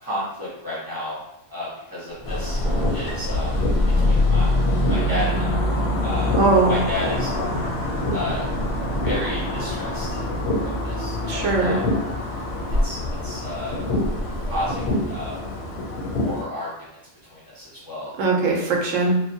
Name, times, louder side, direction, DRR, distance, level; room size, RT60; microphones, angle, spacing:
voice 1, 0.0-1.2 1.5-2.6 2.9-3.5 4.0-5.5 6.0-6.3 6.7-7.3 8.1-8.5 9.0-10.2 10.6-11.8 12.8-13.8 14.5-15.3 16.2-16.7 17.3-18.1, left 1 dB, 20° left, -9 dB, 0.6 m, -32 dB
Thunder, 2.1-15.8, equal, 50° right, 0.7 m, -31 dB
sound 1, 2.2-16.4, left 2 dB, 65° left, 0.7 m, -25 dB
voice 2, 6.3-6.8 11.3-11.8 18.2-19.2, right 3 dB, 80° right, 0 dB, 1.0 m, -20 dB
2.8 x 2.1 x 2.6 m, 0.86 s
omnidirectional pair, 1.3 m